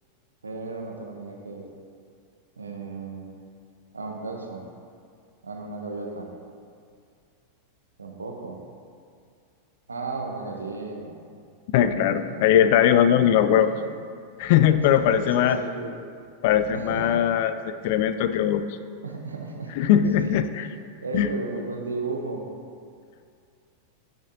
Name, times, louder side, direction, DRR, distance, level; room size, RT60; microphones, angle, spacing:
voice 1, 0.4-1.7 2.6-3.3 3.9-4.6 5.4-6.3 8.0-8.6 9.9-11.1 12.1-12.5 13.7-13.9 14.9-15.9 16.7-17.2 19.0-19.7 20.1-20.3 21.0-22.5, right 3 dB, 75° right, 1 dB, 0.9 m, -34 dB
voice 2, 11.7-13.7 14.4-15.6 16.4-18.6 19.8-20.6 21.1-21.3, left 10 dB, 50° left, 11 dB, 0.3 m, -20 dB
10.0 x 6.1 x 2.8 m, 2.2 s
figure-of-eight pair, 90°, 0 cm